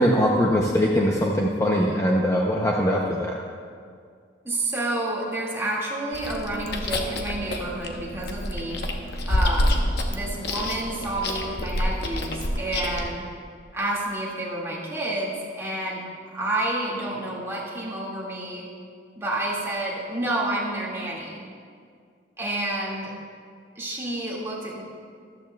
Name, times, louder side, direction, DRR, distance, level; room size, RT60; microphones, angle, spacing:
voice 1, 0.0-3.4, equal, 15° left, -1 dB, 0.6 m, -21 dB
voice 2, 4.4-8.8 9.3-13.2 13.7-18.7 19.2-21.4 22.4-23.1 23.8-24.8, right 1 dB, 15° right, -5 dB, 2.0 m, -29 dB
Chewing mastication, 6.1-13.1, left 1 dB, 65° left, 0.9 m, -28 dB
14.0 x 12.5 x 2.3 m, 2.1 s
head